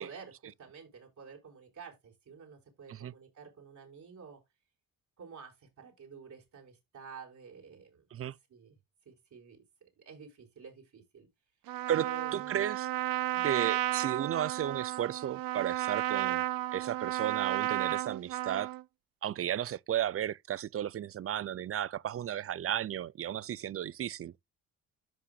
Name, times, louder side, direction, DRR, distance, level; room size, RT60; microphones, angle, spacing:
voice 1, 0.0-4.4 5.2-8.0 8.5-8.8 9.0-9.6 10.0-11.3 12.0-12.6 13.3-13.5, right 5 dB, 55° right, 5.1 m, -50 dB
Trumpet, 11.7-18.8, right 16 dB, 80° right, 0.7 m, -33 dB
voice 2, 12.3-12.9 13.4-16.4 16.7-18.7 19.2-24.3, right 10 dB, 40° right, 0.5 m, -34 dB
13.0 x 5.7 x 2.3 m
cardioid pair, 95°, 34 cm